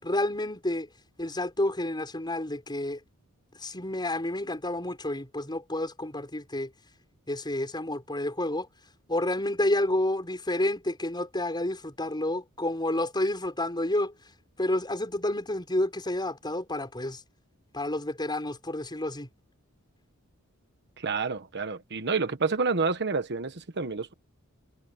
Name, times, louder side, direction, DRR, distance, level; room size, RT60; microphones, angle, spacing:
voice 1, 0.0-0.9 1.2-3.0 3.6-6.7 7.3-8.7 9.1-14.1 14.6-17.2 17.7-19.3, left 1 dB, 20° left, 6.4 m, -29 dB
voice 2, 21.0-24.1, right 4 dB, 55° right, 1.2 m, -29 dB
head